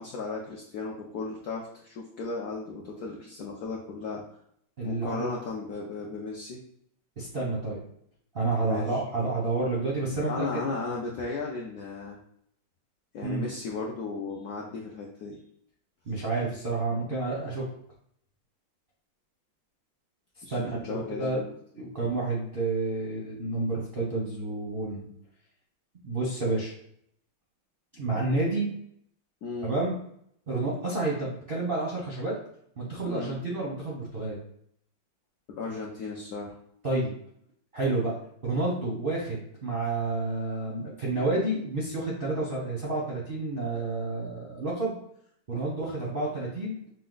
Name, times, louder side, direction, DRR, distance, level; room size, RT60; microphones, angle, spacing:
voice 1, 0.0-4.2 4.8-6.6 8.6-9.0 10.3-12.2 13.1-15.4 16.9-17.1 20.4-21.5 29.4-29.7 33.1-33.4 35.5-36.6, left 4 dB, 75° left, -1 dB, 0.9 m, -35 dB
voice 2, 4.8-5.3 7.2-7.8 8.3-10.7 13.2-13.5 16.1-17.7 20.5-21.4 21.7-25.1 26.0-26.7 27.9-28.7 29.6-30.0 30.5-32.4 32.8-34.4 36.8-37.1 37.7-38.2 38.4-45.0 45.5-46.8, right 2 dB, 50° right, -6 dB, 0.6 m, -30 dB
5.2 x 2.2 x 3.8 m, 0.69 s
omnidirectional pair, 2.4 m